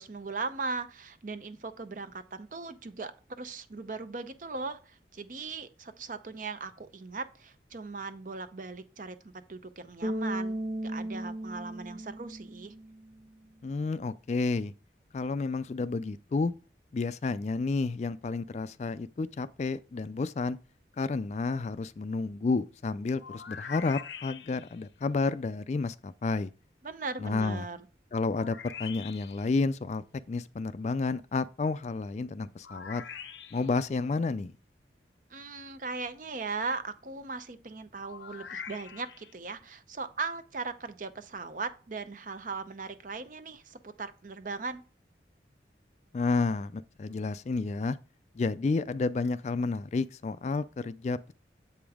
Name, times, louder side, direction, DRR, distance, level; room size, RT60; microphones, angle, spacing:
voice 1, 0.0-3.1 3.4-10.6 10.8-12.7 26.8-27.8 35.3-44.8, right 4 dB, 45° right, 0.7 m, -38 dB
Bass guitar, 10.0-13.1, right 1 dB, 65° right, 1.5 m, -35 dB
voice 2, 13.6-14.7 15.1-16.5 16.9-20.6 21.0-26.5 27.2-27.7 28.1-33.0 33.5-34.5 46.1-48.0 48.3-51.3, left 3 dB, 40° left, 0.3 m, -31 dB
sound 1, 23.2-24.8 28.3-29.5 32.6-33.8 38.0-39.3, left 7 dB, 85° left, 0.7 m, -43 dB
7.9 x 5.1 x 3.5 m
head